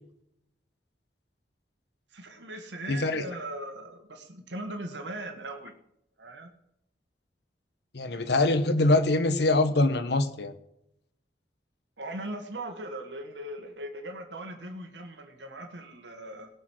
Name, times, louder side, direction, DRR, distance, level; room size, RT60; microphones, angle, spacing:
voice 1, 2.1-5.7 6.2-6.5 12.0-16.5, right 1 dB, 85° right, 4 dB, 1.8 m, -39 dB
voice 2, 2.9-3.2 7.9-10.5, left 2 dB, 65° left, 10 dB, 1.1 m, -24 dB
18.5 x 6.4 x 6.4 m, 0.78 s
head